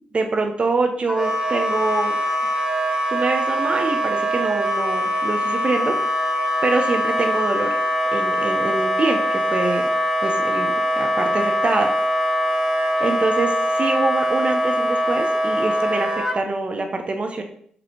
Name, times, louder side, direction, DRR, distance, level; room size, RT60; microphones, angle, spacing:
voice 1, 0.1-2.2 3.1-6.0 6.6-7.8 8.1-9.9 10.2-11.9 13.0-17.4, right 3 dB, 45° right, 4 dB, 0.8 m, -25 dB
Wind instrument woodwind instrument, 1.1-16.4, equal, 20° right, 1.0 m, -22 dB
5.1 x 3.2 x 3.1 m, 0.63 s
cardioid pair, 55°, 3 cm